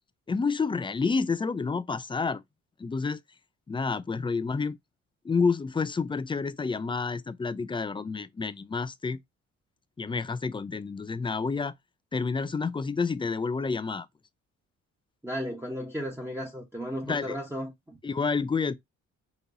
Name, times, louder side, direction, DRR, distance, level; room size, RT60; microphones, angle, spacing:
voice 1, 0.3-2.4 2.8-3.2 3.7-4.8 5.2-9.2 10.0-11.7 12.1-14.1 17.0-17.4 18.0-18.7, left 4 dB, 15° left, 0.4 m, -29 dB
voice 2, 15.2-18.0, equal, 10° right, 1.1 m, -35 dB
5.3 x 2.9 x 2.6 m
cardioid pair, 90°, 30 cm